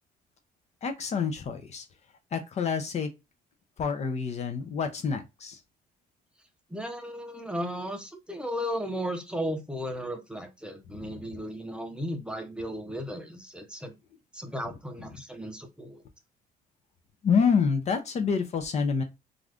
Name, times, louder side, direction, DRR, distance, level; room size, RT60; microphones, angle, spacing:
voice 1, 0.8-1.9 2.3-3.1 3.8-5.6 11.0-11.2 17.2-19.0, left 6 dB, 40° left, 0.5 m, -27 dB
voice 2, 6.7-13.9 14.3-16.0, equal, 5° right, 0.6 m, -35 dB
2.5 x 2.4 x 3.4 m
cardioid pair, 110°, 17 cm